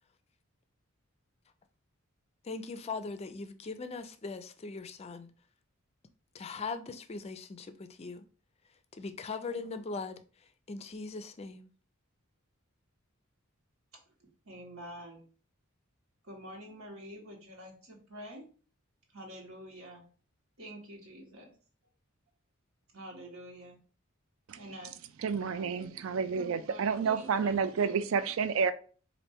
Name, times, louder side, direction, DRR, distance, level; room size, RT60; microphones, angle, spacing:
voice 1, 2.4-5.3 6.3-8.2 8.9-11.7, left 4 dB, 30° left, 0.4 m, -40 dB
voice 2, 14.2-15.2 16.2-18.5 19.1-20.1 20.6-21.5 22.9-23.8 24.6-25.3 25.5-27.9, equal, 85° right, 1.3 m, -48 dB
voice 3, 25.2-28.7, right 6 dB, 65° right, 0.4 m, -30 dB
4.2 x 2.5 x 3.4 m
head